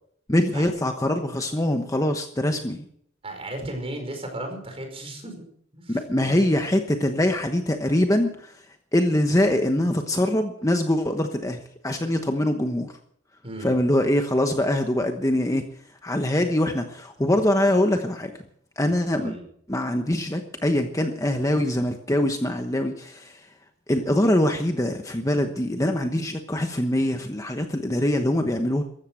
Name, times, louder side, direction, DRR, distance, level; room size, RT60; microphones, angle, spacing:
voice 1, 0.3-2.9 5.9-8.5 8.9-12.9 13.6-15.6 16.0-18.3 18.8-19.4 19.7-23.4 23.9-28.8, left 1 dB, 15° left, 5 dB, 1.1 m, -23 dB
voice 2, 3.2-5.5 5.7-6.3 13.4-13.7 19.2-19.4, right 1 dB, 30° right, 4 dB, 5.1 m, -35 dB
15.0 x 13.5 x 6.4 m, 0.63 s
head